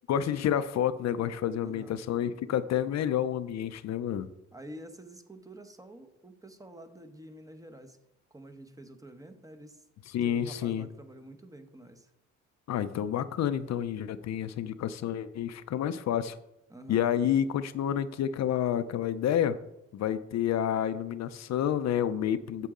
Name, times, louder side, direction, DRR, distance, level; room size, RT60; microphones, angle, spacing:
voice 1, 0.1-4.3 10.1-10.9 12.7-16.4 16.9-19.6 19.9-22.7, left 10 dB, 60° left, 12 dB, 0.6 m, -29 dB
voice 2, 1.6-2.0 4.5-8.0 8.3-9.8 10.2-12.1 16.7-17.0, right 1 dB, 10° right, 7 dB, 0.9 m, -48 dB
8.3 x 7.5 x 3.7 m, 0.86 s
cardioid pair, 90°, 30 cm